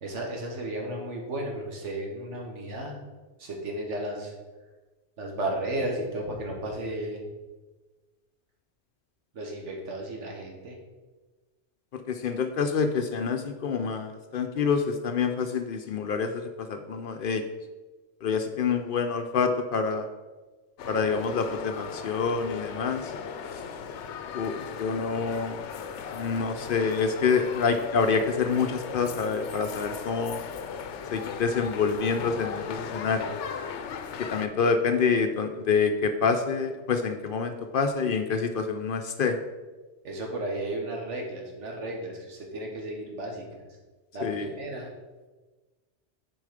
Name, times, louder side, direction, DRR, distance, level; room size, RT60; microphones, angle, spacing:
voice 1, 0.0-3.0 3.4-4.3 5.2-7.2 9.3-10.8 40.0-43.7 44.1-44.9, right 1 dB, 85° right, 1 dB, 1.6 m, -34 dB
voice 2, 12.1-17.4 18.2-20.1 20.9-23.1 24.3-25.6 26.1-30.4 31.1-33.4 34.3-39.4 44.2-44.5, left 5 dB, 60° left, 7 dB, 0.6 m, -27 dB
sound 1, 20.8-34.5, left 6 dB, 80° left, 0.9 m, -37 dB
6.5 x 4.7 x 5.0 m, 1.3 s
omnidirectional pair, 1.2 m